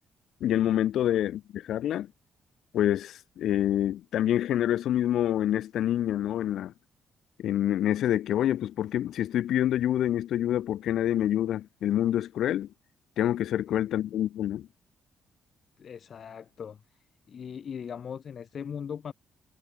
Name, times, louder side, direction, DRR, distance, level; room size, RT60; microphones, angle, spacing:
voice 1, 0.4-2.1 2.7-6.7 7.4-12.7 13.2-14.7, left 11 dB, 75° left, 1.5 m, -27 dB
voice 2, 13.7-14.0 15.8-16.8 17.3-19.1, left 7 dB, 50° left, 3.1 m, -39 dB
cardioid pair, 90°, 0 cm